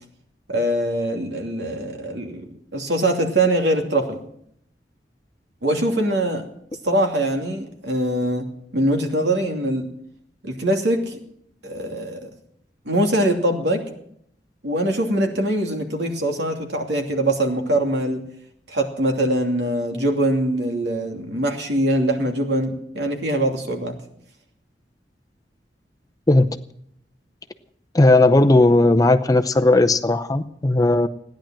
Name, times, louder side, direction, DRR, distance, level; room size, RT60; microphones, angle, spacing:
voice 1, 0.5-4.2 5.6-6.4 6.8-8.5 8.7-9.9 10.4-11.2 11.6-12.3 12.8-13.8 14.6-18.2 18.7-24.0, right 1 dB, 75° right, 3 dB, 2.7 m, -22 dB
voice 2, 27.9-31.1, left 2 dB, 20° left, 8 dB, 0.7 m, -16 dB
16.5 x 10.5 x 7.6 m, 0.70 s
head